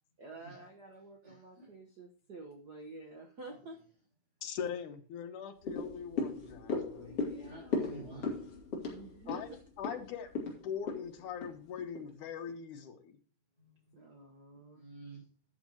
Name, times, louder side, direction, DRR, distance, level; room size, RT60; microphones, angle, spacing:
voice 1, 0.2-3.8 6.9-7.8 8.9-9.4 13.9-14.8, right 2 dB, 50° right, 2 dB, 1.2 m, -50 dB
voice 2, 1.2-1.7 3.4-3.6 7.4-8.4 13.6-13.7 14.7-15.2, right 3 dB, 35° right, -7 dB, 4.8 m, -50 dB
voice 3, 4.4-7.1 9.3-9.5 9.8-10.3 10.6-13.2, left 7 dB, 85° left, 7 dB, 2.7 m, -41 dB
sound 1, 5.6-12.1 12.5-12.6, left 3 dB, 50° left, 3.3 m, -38 dB
13.0 x 9.0 x 2.9 m, 0.38 s
omnidirectional pair, 3.5 m